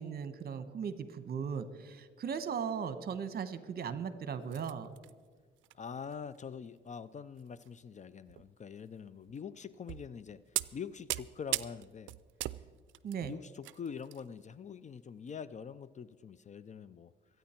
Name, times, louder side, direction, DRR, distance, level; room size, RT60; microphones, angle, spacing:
voice 1, 0.0-4.9 13.0-13.4, right 6 dB, 50° right, 12 dB, 1.1 m, -38 dB
sound 1, 4.4-5.1 5.6-5.7 6.1-6.4 7.4-7.7 8.3-8.5 9.3-9.4 9.9-10.1 10.6-14.2 14.5-14.7 15.3-15.4, right 16 dB, 75° right, 0.4 m, -39 dB
voice 2, 5.7-10.4 10.7-12.1 13.2-17.1, left 6 dB, 35° left, 17 dB, 0.5 m, -44 dB
24.5 x 9.3 x 4.4 m, 1.5 s
cardioid pair, 90°, 20 cm